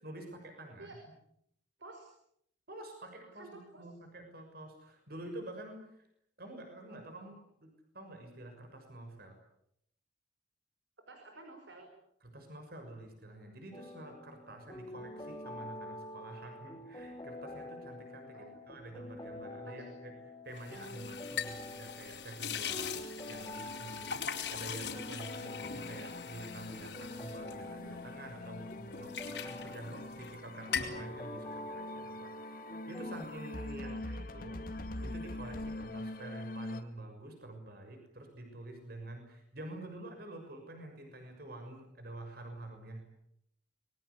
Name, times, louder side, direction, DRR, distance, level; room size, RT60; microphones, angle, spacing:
voice 1, 0.0-1.0 2.7-6.1 6.4-9.4 12.2-20.2 20.4-32.3 32.9-34.6 35.0-43.0, right 1 dB, 60° right, 5 dB, 6.6 m, -48 dB
voice 2, 1.8-2.1 3.3-3.9 11.1-11.9 18.3-19.1 19.6-19.9 33.8-34.2, right 2 dB, 90° right, 4 dB, 5.2 m, -52 dB
sound 1, 13.7-33.2, left 1 dB, 20° left, 4.2 m, -47 dB
sound 2, 20.6-28.3 28.7-30.4 30.6-31.0, left 7 dB, 75° left, 4.4 m, -41 dB
sound 3, 24.6-36.8, left 2 dB, 55° left, 2.0 m, -44 dB
26.5 x 22.5 x 8.5 m, 0.73 s
head